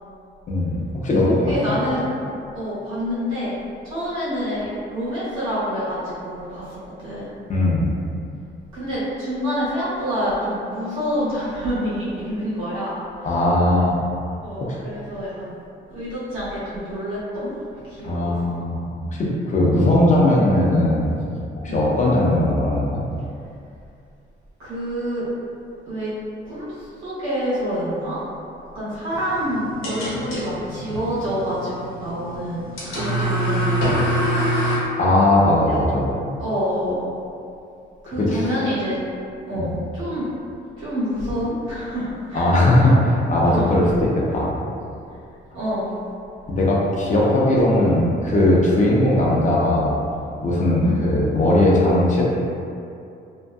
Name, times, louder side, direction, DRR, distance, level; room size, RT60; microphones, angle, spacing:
voice 1, 0.5-1.4 7.5-7.9 13.2-14.0 14.6-14.8 18.0-18.8 19.2-21.2 21.6-23.0 35.0-36.1 38.2-38.4 39.5-39.7 42.3-44.5 46.5-50.0 50.4-52.2, left 1 dB, 40° left, -4 dB, 0.6 m, -18 dB
voice 2, 1.0-2.2 2.5-3.6 3.8-7.3 8.7-13.4 14.4-15.6 15.9-18.4 19.2-19.3 21.7-21.9 24.6-25.3 25.9-26.1 26.4-28.2 28.7-34.1 35.7-35.8 36.4-37.1 38.0-39.1 39.5-40.3 40.8-42.5 42.8-42.9 43.4-43.7 45.5-45.9 50.8-51.1, equal, 85° right, -11 dB, 1.1 m, -27 dB
sound 1, 29.1-34.8, equal, 90° left, 0.8 m, -25 dB
2.6 x 2.5 x 2.3 m, 2.6 s
cardioid pair, 90°, 20 cm